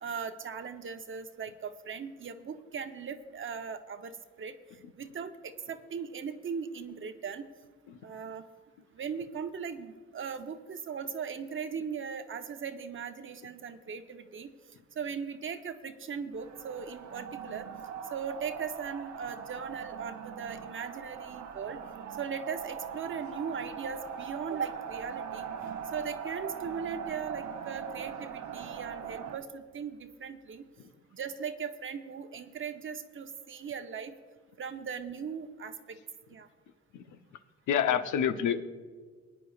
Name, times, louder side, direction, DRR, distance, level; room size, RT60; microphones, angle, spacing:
voice 1, 0.0-4.5 5.0-7.5 8.0-8.4 8.9-14.5 14.9-17.7 18.1-21.8 22.2-25.5 25.9-30.6 31.1-34.1 34.6-36.0 36.3-36.5, right 6 dB, 40° right, 8 dB, 0.8 m, -38 dB
sound 1, 16.3-29.4, right 7 dB, 70° right, 1.1 m, -41 dB
voice 2, 37.7-38.6, left 8 dB, 80° left, 9 dB, 0.8 m, -27 dB
22.5 x 9.7 x 2.4 m, 1.5 s
cardioid pair, 90°, 30 cm